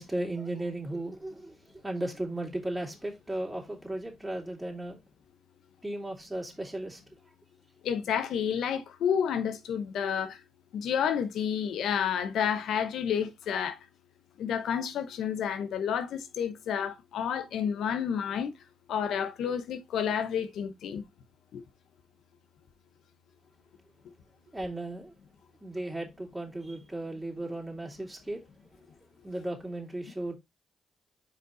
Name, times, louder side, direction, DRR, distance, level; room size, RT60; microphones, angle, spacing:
voice 1, 0.0-5.0 5.8-7.0 24.5-25.1 25.6-28.4 29.2-30.4, right 1 dB, 15° right, 2.9 m, -36 dB
voice 2, 7.8-10.4 10.7-13.8 14.4-18.5 18.9-21.0 21.5-21.6, left 8 dB, 80° left, 0.8 m, -30 dB
5.2 x 4.6 x 3.9 m
supercardioid pair, 60°, 0 cm